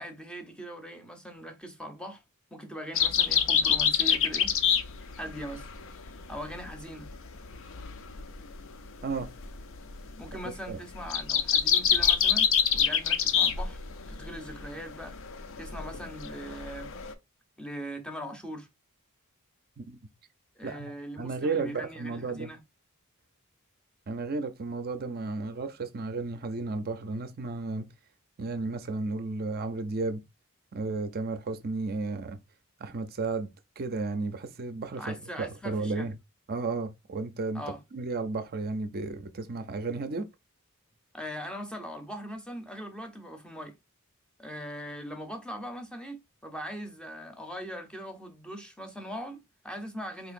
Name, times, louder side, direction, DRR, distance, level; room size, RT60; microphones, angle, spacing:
voice 1, 0.0-2.2 2.5-4.5 5.2-5.7 6.3-7.1 10.2-13.8 14.1-15.2 15.6-16.9 17.6-18.7 20.6-22.6 35.0-36.1 37.5-37.8 41.1-43.8 44.4-50.3, equal, 5° left, 0.6 m, -40 dB
sound 1, 3.0-17.1, left 8 dB, 60° left, 0.5 m, -27 dB
voice 2, 21.2-22.5 24.1-27.9 28.4-30.2 30.7-32.4 32.8-33.5 33.8-36.1 36.5-37.6 37.9-40.3, right 3 dB, 45° right, 0.5 m, -33 dB
3.9 x 2.8 x 2.5 m
head